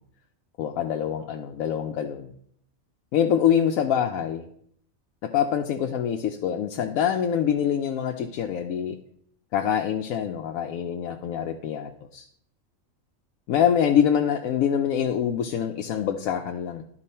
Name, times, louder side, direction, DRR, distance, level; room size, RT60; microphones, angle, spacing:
voice 1, 0.6-2.3 3.1-4.5 5.2-9.0 9.5-12.2 13.5-16.8, left 9 dB, 85° left, 4 dB, 1.1 m, -25 dB
11.5 x 4.5 x 4.3 m, 0.65 s
omnidirectional pair, 1.4 m